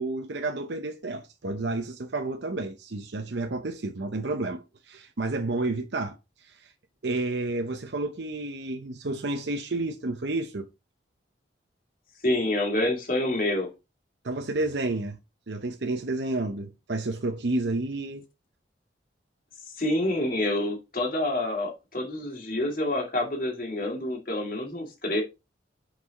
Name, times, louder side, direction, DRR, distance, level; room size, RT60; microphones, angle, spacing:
voice 1, 0.0-6.2 6.4-6.7 7.0-10.7 14.2-15.2 15.5-18.2, right 2 dB, 65° right, 0.7 m, -30 dB
voice 2, 12.2-13.7 19.8-25.2, left 1 dB, 50° left, 2.3 m, -27 dB
6.0 x 4.8 x 4.0 m
head